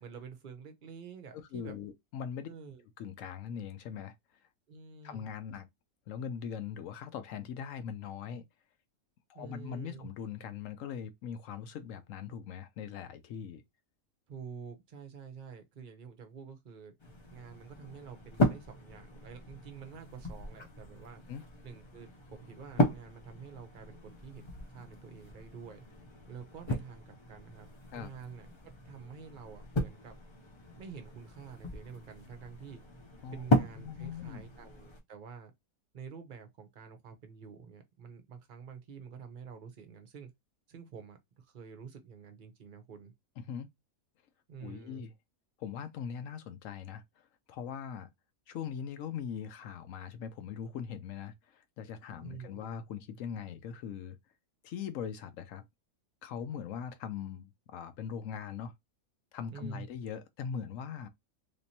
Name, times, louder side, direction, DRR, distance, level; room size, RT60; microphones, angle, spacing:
voice 1, 0.0-1.7 2.5-2.9 4.7-5.3 9.3-10.1 14.3-16.9 17.3-21.2 21.6-24.5 24.7-25.8 26.3-27.7 27.9-30.1 30.7-32.8 33.3-35.5 35.9-40.3 40.7-43.1 44.5-45.0 52.2-52.7 59.5-59.9, right 6 dB, 45° right, 0.7 m, -48 dB
voice 2, 1.3-2.5 3.0-4.1 5.0-5.7 6.1-8.4 9.3-13.6 21.3-21.4 27.9-28.1 33.2-33.4 33.7-34.5 43.5-43.7 44.6-45.1 45.6-47.0 47.5-48.1 48.5-54.2 54.6-55.6 56.2-58.7 59.3-61.1, left 7 dB, 70° left, 0.9 m, -41 dB
sound 1, 17.0-35.0, left 1 dB, 50° left, 0.3 m, -36 dB
3.4 x 2.9 x 2.7 m
omnidirectional pair, 1.6 m